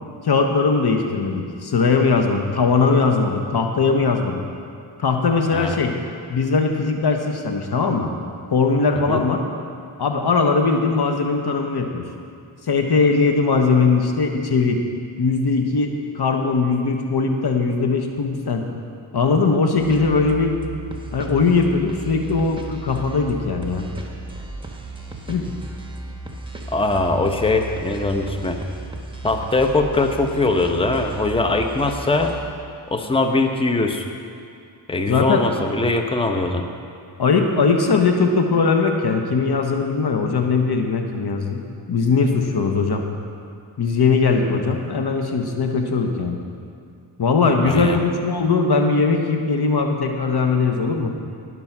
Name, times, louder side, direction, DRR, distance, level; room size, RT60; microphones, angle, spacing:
voice 1, 0.2-4.4 5.0-5.9 6.3-8.1 8.5-9.4 10.0-12.1 12.7-14.8 15.2-18.6 19.1-20.6 21.1-23.9 25.3-25.5 35.1-35.4 37.2-41.6 41.9-43.0 43.8-46.4 47.2-51.1, left 4 dB, 55° left, 4 dB, 1.4 m, -20 dB
sound 1, 19.7-32.5, right 2 dB, 10° right, 1.7 m, -35 dB
voice 2, 26.7-28.6 29.2-32.3 32.9-34.0 34.9-36.7 47.6-48.0, left 2 dB, 10° left, 5 dB, 1.0 m, -21 dB
18.5 x 6.2 x 6.0 m, 2.4 s
supercardioid pair, 50°, 47 cm